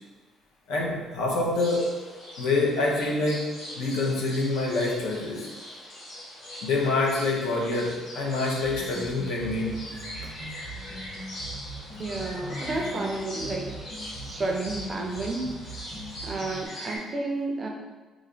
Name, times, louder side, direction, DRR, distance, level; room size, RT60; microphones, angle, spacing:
voice 1, 0.7-2.0 2.4-5.5 6.6-9.8, left 2 dB, 75° left, -1 dB, 0.7 m, -26 dB
sound 1, 1.5-17.0, equal, 50° left, 1.0 m, -41 dB
sound 2, 8.6-16.7, right 1 dB, 30° left, 0.9 m, -41 dB
voice 2, 12.0-13.8 14.3-15.5 16.2-17.7, right 2 dB, 25° right, 2 dB, 0.3 m, -31 dB
3.1 x 2.5 x 3.7 m, 1.2 s
cardioid pair, 175°, 0 cm